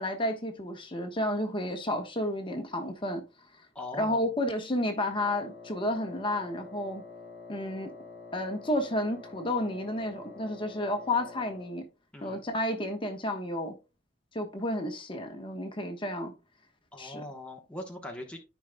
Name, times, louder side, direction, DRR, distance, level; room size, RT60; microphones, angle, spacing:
voice 1, 0.0-3.2 4.0-7.0 7.5-7.9 8.3-11.9 12.2-13.7 14.3-16.3 17.0-17.2, left 1 dB, 30° left, 1.1 m, -31 dB
voice 2, 3.7-4.3 12.1-12.4 16.9-18.4, left 2 dB, 5° left, 1.0 m, -41 dB
Wind instrument woodwind instrument, 5.1-11.8, left 4 dB, 55° left, 2.1 m, -47 dB
13.0 x 5.1 x 2.2 m
head